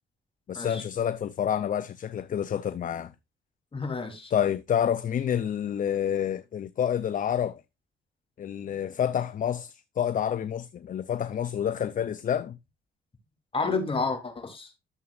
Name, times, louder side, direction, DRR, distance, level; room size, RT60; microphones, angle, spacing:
voice 1, 0.5-3.1 4.3-7.6 8.4-12.6, left 9 dB, 40° left, 0.5 m, -28 dB
voice 2, 3.7-4.3 13.5-14.7, left 4 dB, 25° left, 3.0 m, -30 dB
12.5 x 7.0 x 2.4 m
cardioid pair, 90°, 20 cm